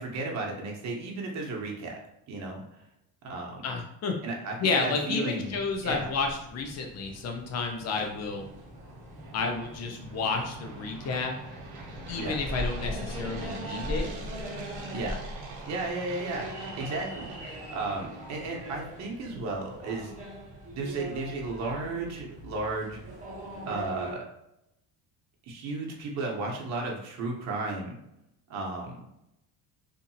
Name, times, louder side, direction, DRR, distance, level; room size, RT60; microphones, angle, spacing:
voice 1, 0.0-2.0 2.3-2.6 3.2-3.6 4.2-5.5 5.8-6.1 12.1-12.4 14.9-15.2 15.7-20.1 20.7-23.0 23.7-24.3 25.5-28.0 28.5-29.0, right 3 dB, 50° right, 0 dB, 0.8 m, -34 dB
voice 2, 3.6-4.1 4.6-8.4 9.3-11.3 12.1-14.1, left 4 dB, 45° left, 3 dB, 0.7 m, -31 dB
sound 1, 5.4-24.1, equal, 20° right, 0.9 m, -41 dB
sound 2, 6.9-19.2, right 3 dB, 85° right, 0.9 m, -45 dB
2.7 x 2.6 x 2.7 m, 0.82 s
cardioid pair, 110°, 37 cm